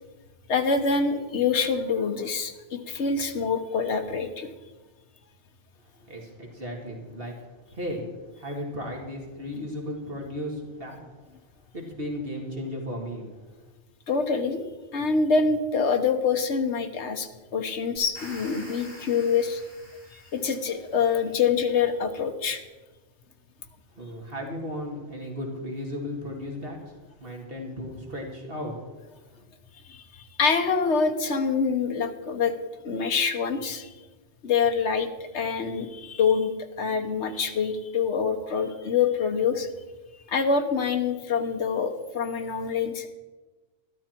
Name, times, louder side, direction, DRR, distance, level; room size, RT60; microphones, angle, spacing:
voice 1, 0.5-4.5 14.1-14.7 14.9-19.6 20.1-22.6 29.8-32.5 32.8-33.9 34.4-39.7 40.3-43.1, left 5 dB, 65° left, 6 dB, 1.3 m, -25 dB
voice 2, 6.0-7.4 7.7-8.1 8.4-11.0 11.7-13.3 24.0-28.8, left 1 dB, 50° right, 0 dB, 2.3 m, -35 dB
sound 1, 18.0-21.1, left 1 dB, 50° left, 3.3 m, -47 dB
12.5 x 12.5 x 4.5 m, 1.2 s
omnidirectional pair, 1.3 m